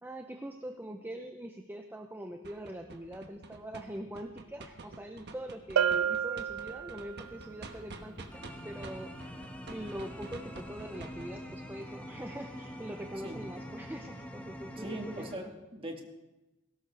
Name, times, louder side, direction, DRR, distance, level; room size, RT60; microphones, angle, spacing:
voice 1, 0.0-15.5, right 1 dB, 10° right, 4 dB, 0.6 m, -43 dB
sound 1, 2.4-8.5 8.8-11.3, right 3 dB, 55° right, 1.2 m, -47 dB
Bell, 5.8-7.3, right 8 dB, 85° right, 0.4 m, -30 dB
sound 2, 7.2-15.4, equal, 5° left, 1.3 m, -45 dB
voice 2, 14.8-16.0, right 1 dB, 25° right, 2 dB, 1.7 m, -40 dB
18.0 x 16.5 x 3.4 m, 1.1 s
head